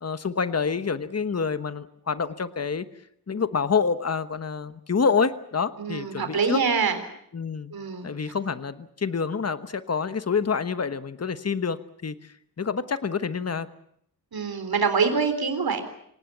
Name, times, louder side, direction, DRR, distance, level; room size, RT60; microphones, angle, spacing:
voice 1, 0.0-2.8 3.3-6.6 7.3-7.7 8.0-12.2 12.6-13.7, left 5 dB, 45° left, 12 dB, 1.2 m, -27 dB
voice 2, 5.8-7.0 7.7-8.3 14.3-15.8, right 5 dB, 90° right, 8 dB, 3.7 m, -25 dB
27.0 x 18.0 x 8.5 m, 0.72 s
wide cardioid pair, 120°, 36 cm